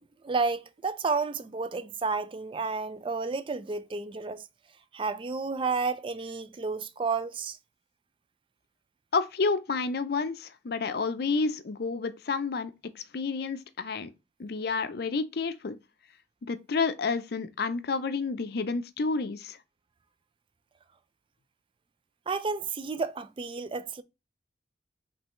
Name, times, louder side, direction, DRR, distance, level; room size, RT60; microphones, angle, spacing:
voice 1, 0.2-4.5 4.9-7.6 22.3-24.0, right 4 dB, 25° right, 0.4 m, -31 dB
voice 2, 9.1-14.1 14.4-15.8 16.4-19.6, left 4 dB, 55° left, 0.5 m, -30 dB
5.3 x 3.3 x 3.0 m
head